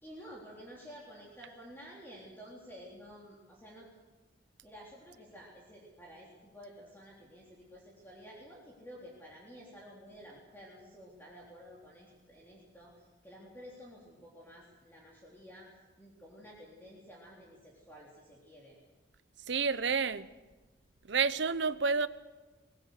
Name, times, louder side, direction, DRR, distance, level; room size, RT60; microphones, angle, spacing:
voice 1, 0.0-3.9 4.6-15.7 16.0-18.8, equal, 10° left, 3.8 m, -52 dB
voice 2, 19.5-20.3 21.0-22.1, right 5 dB, 65° right, 0.8 m, -29 dB
23.0 x 20.0 x 6.6 m
head